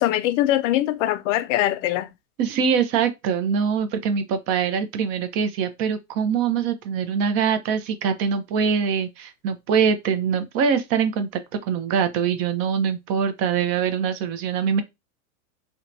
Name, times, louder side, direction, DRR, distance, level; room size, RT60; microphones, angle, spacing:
voice 1, 0.0-2.1, left 14 dB, 55° left, 0.5 m, -22 dB
voice 2, 2.4-14.8, right 7 dB, 40° right, 0.5 m, -23 dB
2.7 x 2.2 x 2.5 m
hypercardioid pair, 105°, 44 cm